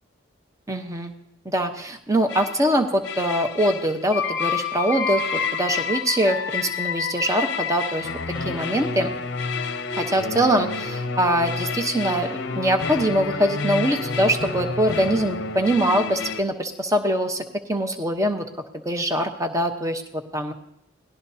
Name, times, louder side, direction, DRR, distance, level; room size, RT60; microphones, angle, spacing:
voice 1, 0.7-1.1 1.4-8.1 8.4-9.1 10.0-17.4 17.7-18.4 18.8-20.5, right 1 dB, 15° right, 5 dB, 1.0 m, -23 dB
sound 1, 2.3-2.7 3.0-16.4, left 5 dB, 55° left, 0.7 m, -29 dB
27.5 x 18.5 x 2.8 m, 0.78 s
head